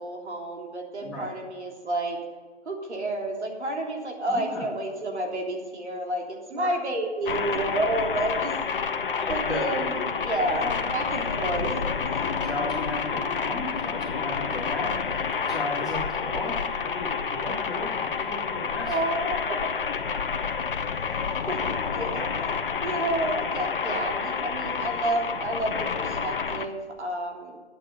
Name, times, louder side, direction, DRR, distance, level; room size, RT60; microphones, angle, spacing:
voice 1, 0.0-2.2 2.6-8.5 8.8-8.9 9.3-11.7 17.8-17.9 18.9-19.6 20.6-21.0 21.5-21.6 21.9-27.6, right 1 dB, 75° right, 0 dB, 3.4 m, -30 dB
voice 2, 4.3-4.7 6.5-6.7 9.2-9.6 10.5-10.6 11.2-11.3 12.2-18.9, left 2 dB, ahead, -8 dB, 2.3 m, -35 dB
sound 1, 7.3-26.7, left 6 dB, 50° left, 0.9 m, -29 dB
11.0 x 9.0 x 6.7 m, 1.4 s
hypercardioid pair, 155°, 34 cm